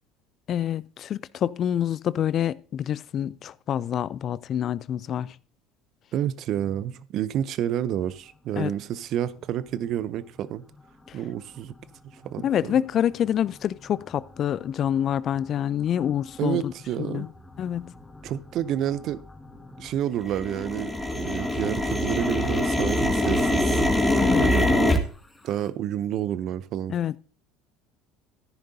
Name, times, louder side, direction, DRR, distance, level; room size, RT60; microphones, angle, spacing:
voice 1, 0.5-5.4 8.6-8.7 11.1-11.2 12.4-16.7 17.0-17.3 17.6-17.9 24.2-24.5 26.9-27.2, left 10 dB, 45° left, 0.4 m, -27 dB
voice 2, 6.1-10.6 11.1-11.7 12.1-12.7 16.4-17.3 18.2-19.2 19.8-20.9 21.2-23.8 24.4-25.0 25.4-26.9, right 11 dB, 55° right, 0.6 m, -29 dB
sound 1, 14.1-14.2 14.8-15.0 15.6-15.9 16.4-16.5 16.7-17.3 17.5-19.9 20.1-25.0, left 1 dB, 15° left, 1.8 m, -24 dB
14.0 x 10.5 x 2.7 m
hypercardioid pair, 75°, 0 cm